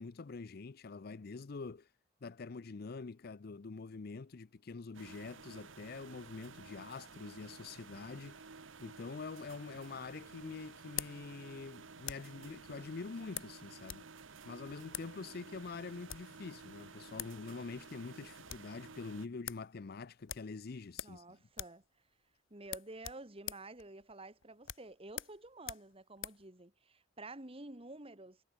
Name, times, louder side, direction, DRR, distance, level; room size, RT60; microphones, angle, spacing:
voice 1, 0.0-1.9 2.2-8.5 8.8-14.1 14.4-21.4, left 4 dB, 50° left, 0.5 m, -45 dB
sound 1, 4.9-19.3, right 4 dB, 80° right, 1.3 m, -53 dB
sound 2, 9.5-12.4 13.3-14.1 14.3-14.4 14.9-15.1 15.9-16.4 16.9-17.0 17.2-17.4 17.7-17.8 18.1-18.7 19.1-19.2 19.5-19.7 20.3-21.3 21.5-21.9 22.1-22.2 22.6-26.5, left 11 dB, 85° left, 1.5 m, -45 dB
voice 2, 21.0-21.8 22.5-28.4, right 2 dB, 30° right, 2.4 m, -50 dB
head